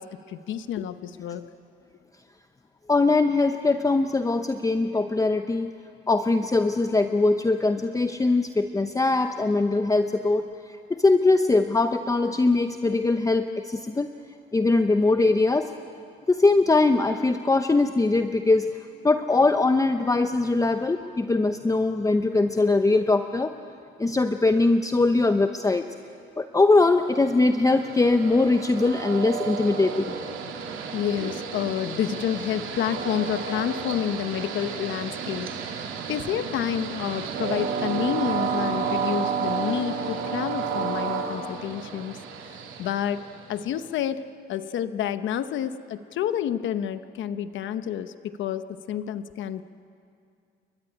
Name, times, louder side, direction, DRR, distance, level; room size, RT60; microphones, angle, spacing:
voice 1, 0.0-1.5 30.9-35.5 36.1-42.2 42.8-43.2 43.5-49.6, left 10 dB, 75° left, 11 dB, 0.9 m, -29 dB
voice 2, 2.9-5.7 6.1-14.1 14.5-15.7 16.3-18.8 19.0-23.5 24.0-25.9 26.4-30.1, left 3 dB, 15° left, 7 dB, 0.8 m, -21 dB
Train, 27.0-43.7, right 6 dB, 80° right, 2.5 m, -31 dB
29.5 x 14.0 x 10.0 m, 2.4 s
cardioid pair, 90°, 20 cm